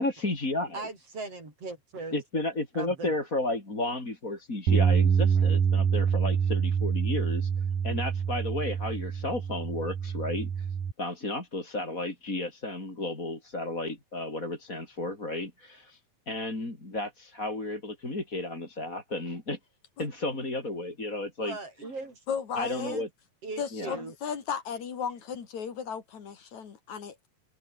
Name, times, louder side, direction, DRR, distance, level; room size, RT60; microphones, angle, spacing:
voice 1, 0.0-0.9 2.1-16.0 16.3-19.6 20.0-21.6 22.6-23.1 23.7-24.0, left 2 dB, 25° left, 5.6 m, -33 dB
voice 2, 0.7-2.2 2.7-3.1 5.4-5.5 21.4-22.2 22.7-23.1 23.4-24.2, right 3 dB, 45° right, 7.6 m, -39 dB
Bass guitar, 4.7-10.9, right 7 dB, 75° right, 4.8 m, -26 dB
voice 3, 22.3-23.0 23.6-27.3, left 7 dB, 60° left, 4.1 m, -35 dB
omnidirectional pair, 3.7 m